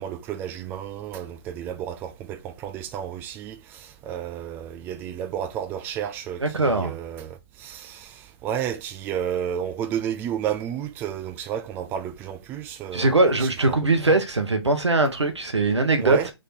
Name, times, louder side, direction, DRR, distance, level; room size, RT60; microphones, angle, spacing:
voice 1, 0.0-13.8 14.1-14.2 16.0-16.3, right 9 dB, 15° right, 0.4 m, -32 dB
voice 2, 6.4-6.9 12.9-16.2, right 2 dB, 80° right, 1.1 m, -21 dB
3.6 x 3.3 x 4.1 m
figure-of-eight pair, 130°, 14 cm